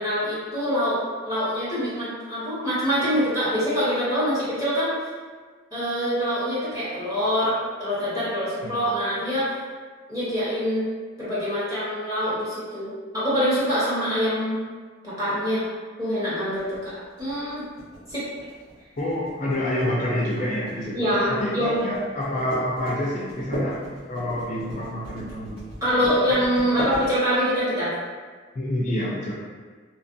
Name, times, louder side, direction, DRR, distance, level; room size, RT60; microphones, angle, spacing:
voice 1, 0.0-5.1 5.7-9.6 10.1-10.9 11.2-14.6 15.0-15.7 16.0-17.6 18.1-18.2 20.9-21.8 25.8-27.9, equal, 15° right, -11 dB, 1.0 m, -25 dB
sound 1, 16.6-27.6, right 1 dB, 85° right, 1.2 m, -37 dB
voice 2, 19.0-23.8 24.1-25.7 26.0-26.1 28.5-29.3, left 1 dB, 35° left, -5 dB, 0.4 m, -27 dB
2.8 x 2.4 x 2.6 m, 1.5 s
head